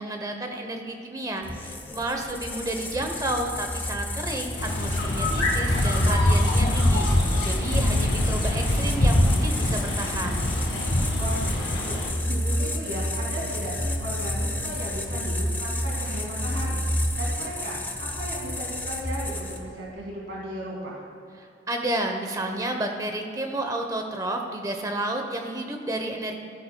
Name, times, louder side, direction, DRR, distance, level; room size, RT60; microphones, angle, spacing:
voice 1, 0.0-7.1 7.4-10.4 21.7-26.4, right 1 dB, 20° right, 3 dB, 0.8 m, -31 dB
sound 1, 1.4-19.8, left 1 dB, 10° left, 0.5 m, -31 dB
sound 2, 4.6-12.1, left 1 dB, 70° left, 1.7 m, -23 dB
voice 2, 11.2-16.8 17.1-21.0, right 1 dB, 70° right, -4 dB, 2.1 m, -36 dB
14.5 x 8.6 x 2.2 m, 2.5 s
head